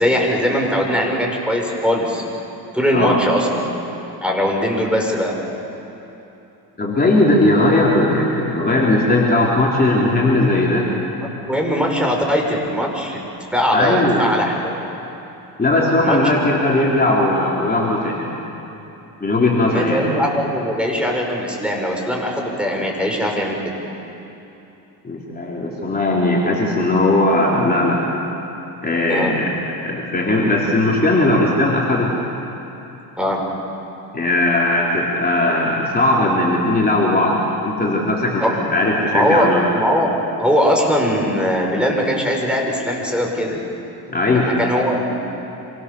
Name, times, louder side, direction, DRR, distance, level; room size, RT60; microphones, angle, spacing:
voice 1, 0.0-2.2 2.7-3.7 4.2-5.3 11.4-13.3 13.5-14.8 16.0-16.2 19.7-23.6 29.1-29.3 33.2-33.4 38.4-38.5 39.1-39.5 39.7-40.1 40.4-43.6 44.3-45.2, equal, 5° right, 0 dB, 6.2 m, -20 dB
voice 2, 2.9-3.3 6.8-10.9 13.7-14.3 15.6-18.2 19.2-20.0 25.0-28.0 28.8-29.5 29.8-32.1 34.1-39.6 44.1-44.6, left 2 dB, 20° left, -4 dB, 4.2 m, -18 dB
27.5 x 24.5 x 7.2 m, 2.9 s
cardioid pair, 90°, 41 cm